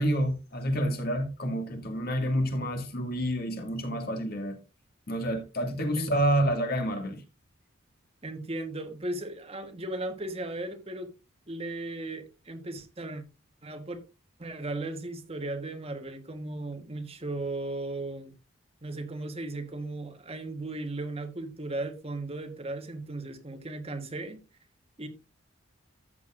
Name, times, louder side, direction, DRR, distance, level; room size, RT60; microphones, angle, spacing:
voice 1, 0.0-4.6 5.1-7.2, equal, 50° left, 2.2 m, -28 dB
voice 2, 8.2-11.1 11.5-13.2 13.6-14.0 14.4-18.3 18.8-24.4 25.0-25.1, right 2 dB, 30° right, 1.4 m, -36 dB
13.5 x 8.3 x 2.6 m
head